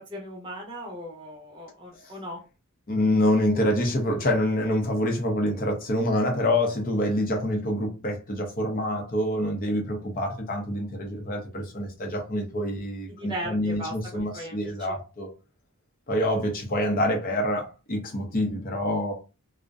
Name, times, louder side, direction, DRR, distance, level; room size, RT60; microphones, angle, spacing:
voice 1, 0.0-2.4 13.1-14.7, equal, 20° right, 0.7 m, -38 dB
voice 2, 2.9-15.3 16.1-19.1, left 1 dB, 40° left, 0.6 m, -26 dB
2.5 x 2.1 x 2.4 m
head